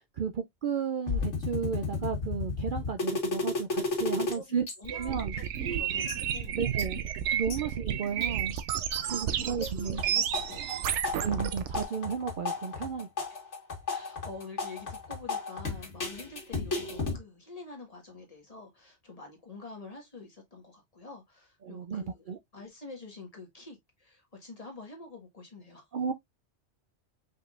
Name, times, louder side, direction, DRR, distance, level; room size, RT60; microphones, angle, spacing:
voice 1, 0.2-4.7 4.9-5.3 5.6-5.8 6.5-7.0 7.3-8.5 9.1-10.0 11.2-13.3 21.6-22.4 25.9-26.1, right 6 dB, 55° right, 0.6 m, -33 dB
sound 1, 1.1-4.3 4.7-4.8 5.0-5.7 6.1-7.6 8.0-8.6 8.9-9.7 10.0-17.2, left 4 dB, 80° left, 1.9 m, -33 dB
voice 2, 4.2-5.4 5.7-6.6 7.6-7.7 8.9-11.0 13.9-22.3 22.5-25.9, left 3 dB, 35° left, 1.7 m, -47 dB
sound 2, 4.8-11.8, right 9 dB, 80° right, 0.9 m, -32 dB
5.4 x 3.7 x 2.4 m
omnidirectional pair, 1.2 m